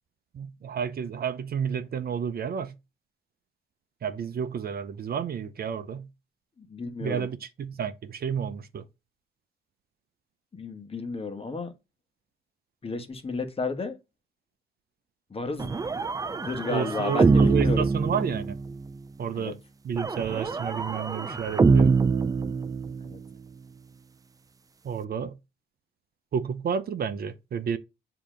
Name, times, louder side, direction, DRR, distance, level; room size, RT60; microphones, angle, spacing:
voice 1, 0.3-2.7 4.0-6.1 7.0-8.8 16.7-18.6 19.2-19.6 19.8-21.9 24.8-25.4 26.3-27.8, right 7 dB, 50° right, 0.7 m, -31 dB
voice 2, 6.6-7.3 10.5-11.7 12.8-13.9 15.3-15.9 16.3-17.9 19.3-19.5 23.0-23.2, left 3 dB, 30° left, 1.3 m, -33 dB
sound 1, 15.6-18.9 20.0-23.2, right 4 dB, 20° right, 0.4 m, -24 dB
7.1 x 2.9 x 5.0 m
cardioid pair, 90°, 20 cm